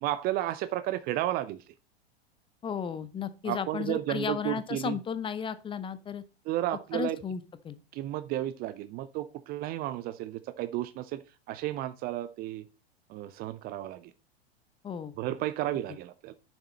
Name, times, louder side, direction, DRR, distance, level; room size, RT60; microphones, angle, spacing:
voice 1, 0.0-1.6 3.4-5.0 6.5-7.2 7.9-11.2 11.5-12.7 13.1-14.1 15.2-16.3, right 14 dB, 30° right, 15 dB, 0.6 m, -32 dB
voice 2, 2.6-6.2 6.9-7.8 14.8-15.1, left 7 dB, 15° left, 13 dB, 0.8 m, -34 dB
9.7 x 7.2 x 4.2 m, 0.31 s
figure-of-eight pair, 90°, 31 cm